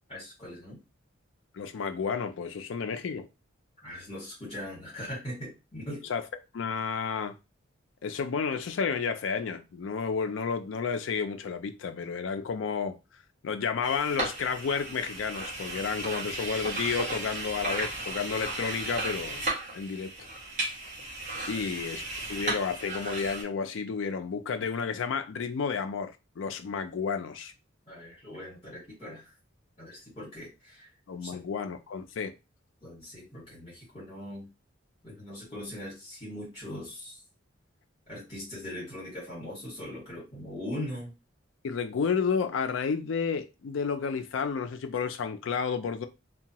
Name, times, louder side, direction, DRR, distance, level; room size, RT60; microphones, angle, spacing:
voice 1, 0.1-0.8 3.8-6.0 21.5-21.8 27.9-29.3 29.8-30.9 31.2-31.4 32.8-34.5 35.0-37.2 38.1-41.1, left 1 dB, 30° left, 1.6 m, -40 dB
voice 2, 1.5-3.3 6.1-6.2 6.5-7.4 8.0-13.0 13.4-20.1 21.5-22.0 22.3-27.5 31.1-32.3 41.6-46.1, left 5 dB, 70° left, 0.4 m, -31 dB
sound 1, 13.8-23.4, right 2 dB, 40° right, 1.1 m, -35 dB
2.7 x 2.2 x 2.8 m
head